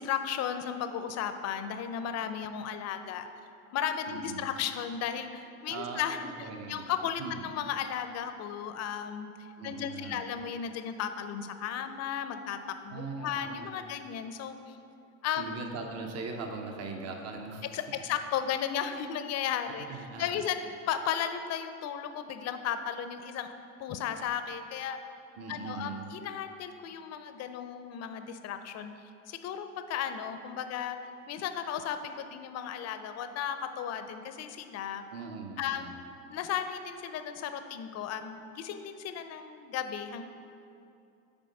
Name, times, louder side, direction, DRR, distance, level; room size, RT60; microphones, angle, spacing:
voice 1, 0.0-3.3 3.7-9.3 9.6-12.6 12.8-14.8 15.2-15.5 17.7-23.5 23.8-25.0 25.5-28.9 29.3-31.0 31.3-35.0 35.6-35.9 36.3-40.2, left 8 dB, 40° left, 9 dB, 0.6 m, -35 dB
voice 2, 4.1-4.5 5.7-6.9 7.2-7.4 9.6-10.2 12.9-13.8 15.4-18.0 19.9-20.4 25.4-26.1 35.1-36.0, right 4 dB, 40° right, 3 dB, 0.9 m, -40 dB
7.1 x 4.4 x 5.3 m, 2.6 s
hypercardioid pair, 80°, 41 cm